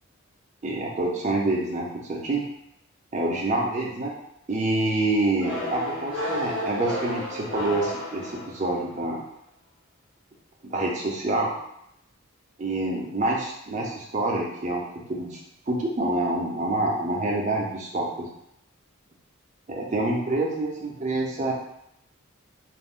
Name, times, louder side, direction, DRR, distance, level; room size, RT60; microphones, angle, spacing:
voice 1, 0.6-2.4 3.1-4.1 4.5-9.2 10.6-11.5 12.6-15.4 15.7-18.3 19.7-21.5, right 2 dB, 35° right, -2 dB, 0.5 m, -27 dB
sound 1, 5.4-8.9, left 1 dB, 60° left, 1.2 m, -32 dB
2.5 x 2.0 x 3.5 m, 0.77 s
head